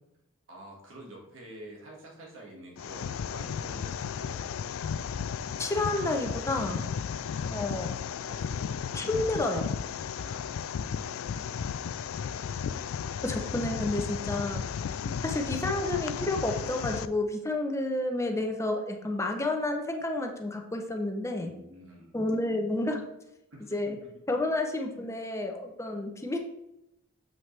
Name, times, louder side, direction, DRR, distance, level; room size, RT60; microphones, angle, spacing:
voice 1, 0.5-4.8 6.6-6.9 8.3-9.1 10.1-10.6 15.1-15.2 21.4-22.1 23.5-24.0 24.2-24.4 24.9-25.1, right 1 dB, 70° right, -2 dB, 1.9 m, -48 dB
sound 1, 2.8-17.1, left 7 dB, 90° left, 0.3 m, -34 dB
voice 2, 5.6-6.8 7.5-7.9 8.9-9.7 13.2-14.6 14.9-21.5 22.1-23.0 23.7-24.0 24.3-26.4, left 2 dB, 15° left, 3 dB, 0.7 m, -30 dB
7.5 x 5.7 x 3.3 m, 0.86 s
head